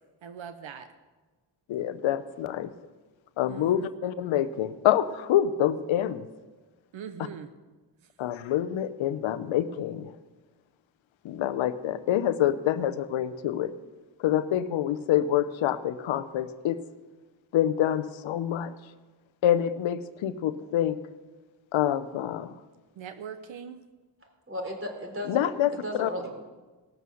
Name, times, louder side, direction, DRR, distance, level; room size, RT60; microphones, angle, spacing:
voice 1, 0.2-0.9 3.5-3.9 6.9-7.5 22.9-23.8, right 7 dB, 80° right, 10 dB, 0.9 m, -41 dB
voice 2, 1.7-2.7 3.4-6.3 8.2-10.1 11.2-13.7 14.2-16.8 17.5-18.7 19.4-21.0 21.7-22.5 25.3-26.1, left 11 dB, 85° left, 13 dB, 0.7 m, -26 dB
voice 3, 24.5-25.5 25.8-26.3, equal, 25° right, 1 dB, 3.8 m, -34 dB
18.0 x 6.9 x 6.3 m, 1.3 s
cardioid pair, 60°, 46 cm